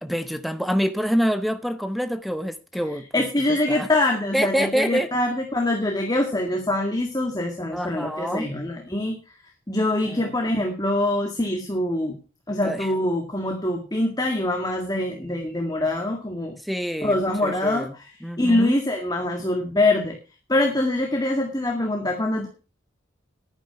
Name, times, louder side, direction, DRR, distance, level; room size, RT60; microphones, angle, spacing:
voice 1, 0.0-3.1 3.5-3.9 4.3-5.1 7.7-8.5 10.1-10.4 12.6-12.9 16.6-18.0 18.2-18.8, equal, ahead, 0.7 m, -26 dB
voice 2, 3.1-9.2 9.7-12.2 12.5-16.6 17.0-18.1 18.4-20.2 20.5-22.5, left 1 dB, 20° left, 1.8 m, -24 dB
11.0 x 10.0 x 5.8 m
head